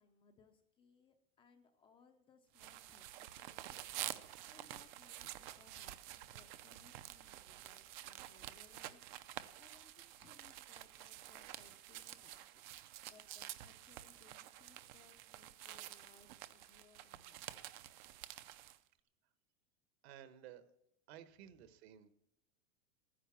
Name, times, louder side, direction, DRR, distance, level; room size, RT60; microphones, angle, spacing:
voice 1, 0.0-3.9 4.1-12.6 13.1-17.7, left 6 dB, 15° left, 4 dB, 0.5 m, -68 dB
sound 1, 2.6-18.8, right 14 dB, 40° right, 0.6 m, -50 dB
voice 2, 20.0-20.6 21.1-22.1, right 10 dB, 55° right, 11 dB, 1.3 m, -55 dB
13.5 x 10.0 x 7.2 m, 0.78 s
supercardioid pair, 170°, 38 cm